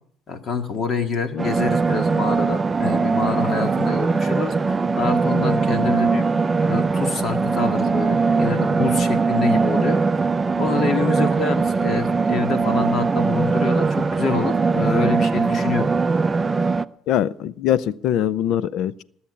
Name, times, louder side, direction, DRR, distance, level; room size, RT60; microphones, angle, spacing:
voice 1, 0.3-4.5 4.9-6.3 6.6-10.0 10.5-15.9, left 4 dB, 40° left, 6 dB, 2.0 m, -26 dB
sound 1, 1.4-16.8, right 4 dB, 20° right, 0.5 m, -21 dB
voice 2, 17.1-19.0, left 11 dB, 65° left, 19 dB, 0.6 m, -22 dB
19.0 x 7.2 x 8.5 m, 0.68 s
cardioid pair, 110°, 0 cm